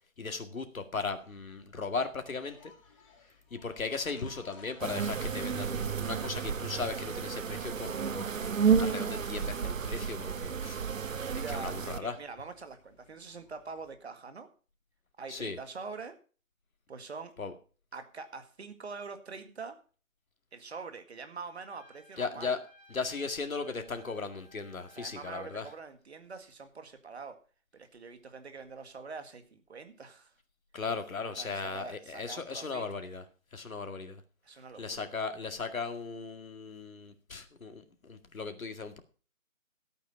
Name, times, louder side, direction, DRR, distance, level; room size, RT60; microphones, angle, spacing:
voice 1, 0.2-2.7 3.5-8.3 8.8-10.8 11.3-12.2 15.3-15.6 17.4-17.5 22.2-22.6 22.9-25.7 30.7-33.2 33.5-34.2 34.8-39.0, left 4 dB, 80° left, 7 dB, 2.2 m, -37 dB
sound 1, 1.0-13.9, left 4 dB, 25° left, 2.5 m, -55 dB
sound 2, 4.8-12.0, right 6 dB, 70° right, 0.9 m, -31 dB
voice 2, 11.4-14.5 15.2-16.2 16.9-17.3 17.9-19.8 20.5-22.6 24.9-27.4 27.7-30.3 31.4-32.8 34.4-35.1, right 4 dB, 50° right, 9 dB, 2.0 m, -44 dB
Trumpet, 21.6-25.9, equal, 20° right, 3.6 m, -59 dB
13.5 x 8.7 x 5.6 m, 0.38 s
figure-of-eight pair, 165°, 41 cm